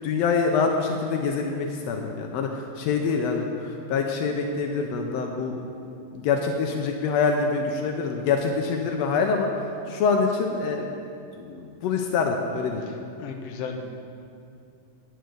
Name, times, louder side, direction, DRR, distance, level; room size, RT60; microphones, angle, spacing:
voice 1, 0.0-5.6 6.1-10.9 11.4-12.8, left 5 dB, 90° left, 2 dB, 1.5 m, -25 dB
voice 2, 13.2-13.9, left 5 dB, 75° left, 3 dB, 1.4 m, -34 dB
9.2 x 6.6 x 7.8 m, 2.5 s
omnidirectional pair, 3.8 m